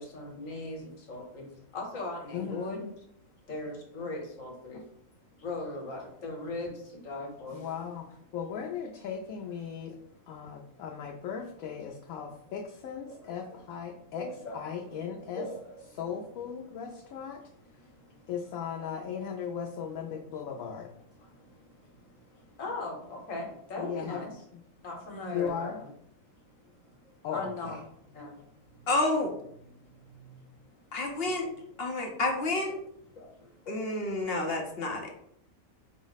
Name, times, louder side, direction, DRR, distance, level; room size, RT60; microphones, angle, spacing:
voice 1, 0.0-2.9 3.5-4.9 5.3-7.7 13.1-13.6 14.1-14.6 15.3-15.9 17.8-18.3 21.2-24.3 24.8-25.9 26.2-27.8 28.1-28.9 29.8-31.0 33.1-34.0 35.0-35.1, left 2 dB, 70° left, 0 dB, 1.4 m, -40 dB
voice 2, 2.3-2.8 7.5-10.0 10.3-14.3 14.5-15.5 15.9-17.4 18.3-20.9 23.8-24.2 24.5-24.6 25.3-25.8 27.2-27.8, left 7 dB, 90° left, 0 dB, 1.0 m, -37 dB
voice 3, 28.9-29.3 30.9-31.5 31.8-32.7 33.7-35.1, left 2 dB, 55° left, 2 dB, 0.8 m, -29 dB
4.7 x 2.0 x 3.9 m, 0.70 s
omnidirectional pair, 1.4 m